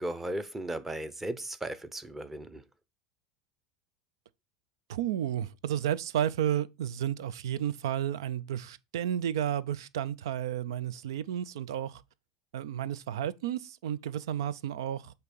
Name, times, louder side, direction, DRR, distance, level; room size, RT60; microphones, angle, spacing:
voice 1, 0.0-2.6, right 1 dB, 10° right, 0.7 m, -36 dB
voice 2, 4.9-12.0 12.5-15.1, right 10 dB, 90° right, 0.4 m, -32 dB
8.0 x 2.9 x 5.3 m
supercardioid pair, 120°, 2 cm